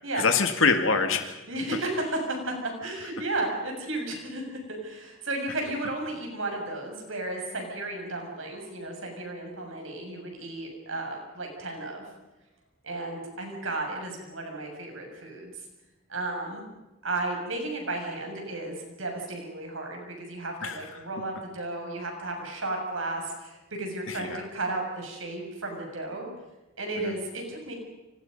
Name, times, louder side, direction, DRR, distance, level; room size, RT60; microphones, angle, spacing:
voice 1, 0.1-1.4 20.6-21.0 24.1-24.4 27.0-27.1, left 4 dB, 80° left, 6 dB, 1.9 m, -25 dB
voice 2, 1.5-12.0 12.8-15.5 16.1-16.7 17.0-26.3 26.8-27.7, right 2 dB, 85° right, 2 dB, 6.9 m, -34 dB
29.0 x 24.5 x 5.4 m, 1.0 s
head